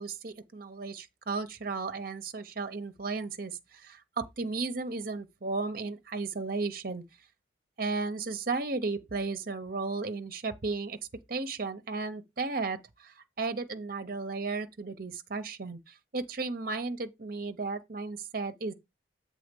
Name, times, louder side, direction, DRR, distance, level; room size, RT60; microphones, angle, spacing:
voice 1, 0.0-7.0 7.8-11.0 11.3-18.7, right 3 dB, 55° right, 0.8 m, -34 dB
7.7 x 3.7 x 5.2 m
head